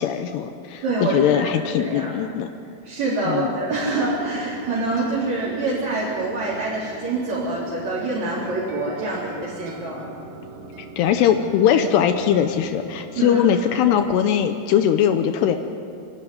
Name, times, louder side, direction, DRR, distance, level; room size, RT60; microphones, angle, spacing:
voice 1, 0.0-2.5 3.3-3.5 11.0-15.6, left 9 dB, 80° left, 7 dB, 2.8 m, -20 dB
voice 2, 0.8-1.4 1.8-2.1 2.8-10.0 13.2-13.5, right 2 dB, 40° right, -7 dB, 4.8 m, -25 dB
sound 1, 3.6-14.1, right 4 dB, 60° right, 3.1 m, -41 dB
30.0 x 12.5 x 9.4 m, 2.4 s
omnidirectional pair, 5.0 m